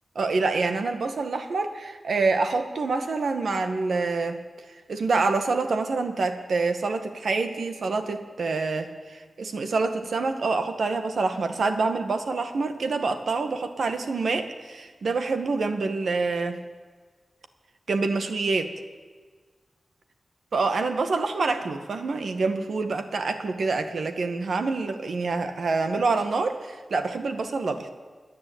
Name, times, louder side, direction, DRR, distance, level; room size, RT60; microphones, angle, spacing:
voice 1, 0.2-4.4 4.9-16.6 17.9-18.7 20.5-27.9, right 3 dB, 80° right, 7 dB, 1.9 m, -26 dB
28.0 x 10.5 x 8.9 m, 1.5 s
wide cardioid pair, 115°, 0 cm